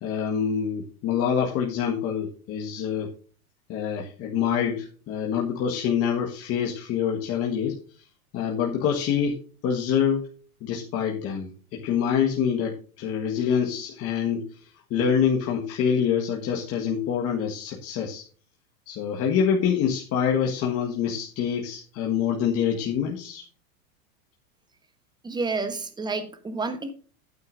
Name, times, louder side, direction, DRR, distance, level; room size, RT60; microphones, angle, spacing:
voice 1, 0.0-3.1 3.7-7.8 8.3-10.2 10.6-18.2 18.9-23.4, left 7 dB, 35° left, -2 dB, 1.6 m, -26 dB
voice 2, 25.2-26.9, right 3 dB, 10° right, 10 dB, 1.1 m, -30 dB
12.0 x 9.3 x 2.6 m, 0.40 s
supercardioid pair, 145°, 42 cm